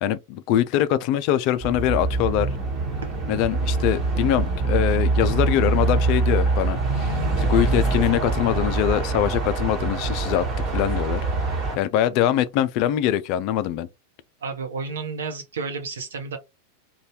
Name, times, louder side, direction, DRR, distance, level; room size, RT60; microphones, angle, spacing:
voice 1, 0.0-2.5 3.3-10.5 10.7-11.2 11.8-13.9, left 12 dB, 45° left, 0.3 m, -23 dB
sound 1, 1.6-11.8, right 3 dB, 30° right, 1.3 m, -24 dB
voice 2, 14.4-16.4, right 4 dB, 65° right, 0.8 m, -31 dB
2.6 x 2.3 x 3.0 m
figure-of-eight pair, 90°, 0 cm